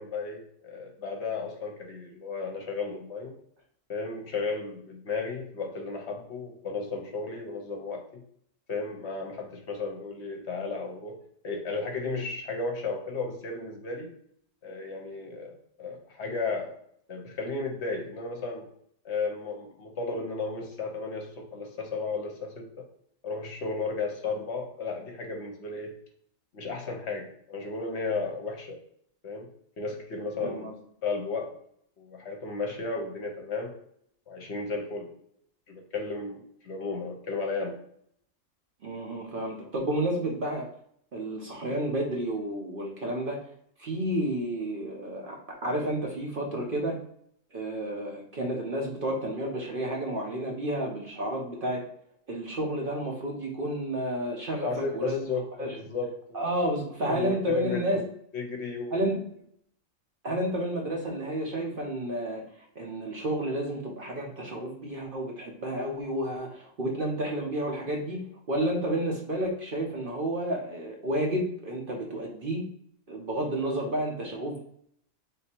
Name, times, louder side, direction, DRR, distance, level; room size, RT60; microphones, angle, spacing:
voice 1, 0.0-3.3 3.9-8.0 8.7-11.2 11.4-14.1 14.6-16.7 17.1-18.7 19.0-22.7 23.2-25.9 26.5-28.8 29.2-29.4 29.8-30.7 31.0-31.5 32.0-33.7 34.3-35.1 35.7-37.7 54.6-56.4 57.0-58.0 58.3-59.0, left 3 dB, 60° left, 2 dB, 1.0 m, -34 dB
voice 2, 30.4-30.7 38.8-40.7 41.1-43.4 43.8-45.4 45.6-47.0 47.5-51.8 52.3-55.2 55.6-55.8 56.3-58.0 58.9-59.2 60.2-68.2 68.5-72.6 73.1-74.6, right 1 dB, 50° right, 0 dB, 0.8 m, -31 dB
3.5 x 2.7 x 4.3 m, 0.69 s
omnidirectional pair, 1.4 m